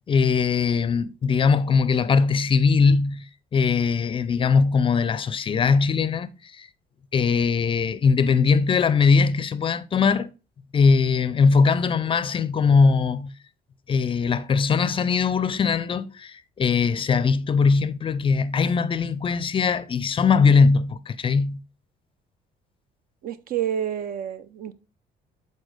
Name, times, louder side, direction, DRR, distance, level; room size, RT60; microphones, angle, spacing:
voice 1, 0.1-6.7 7.1-10.3 10.7-13.3 13.9-21.6, left 5 dB, 30° left, 0.4 m, -21 dB
voice 2, 23.2-24.7, right 9 dB, 60° right, 0.6 m, -29 dB
8.1 x 4.2 x 3.2 m
cardioid pair, 110°, 17 cm